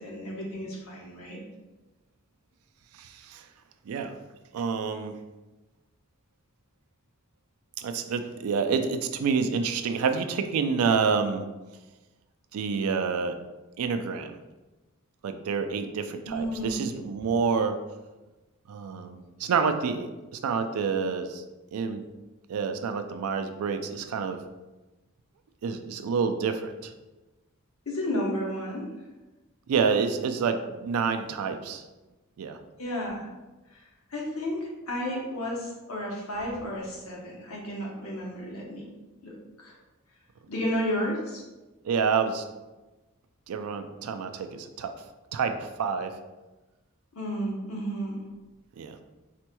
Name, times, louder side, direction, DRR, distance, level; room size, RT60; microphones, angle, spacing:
voice 1, 0.0-1.4 16.2-16.8 27.9-28.9 32.8-33.3 33.7-33.8 34.1-38.8 39.2-39.8 40.5-41.4 47.1-48.2, equal, 70° left, -3 dB, 1.0 m, -32 dB
voice 2, 2.9-3.5 3.9-4.2 4.5-5.2 7.8-11.5 12.5-13.4 13.8-14.3 15.2-17.8 18.7-21.4 21.7-22.0 22.5-24.4 25.6-26.9 29.7-31.8 32.4-32.6 41.8-42.5 43.5-44.9 45.3-46.2 48.8-49.0, right 5 dB, 80° right, 8 dB, 0.3 m, -28 dB
4.2 x 2.9 x 2.2 m, 1.1 s
head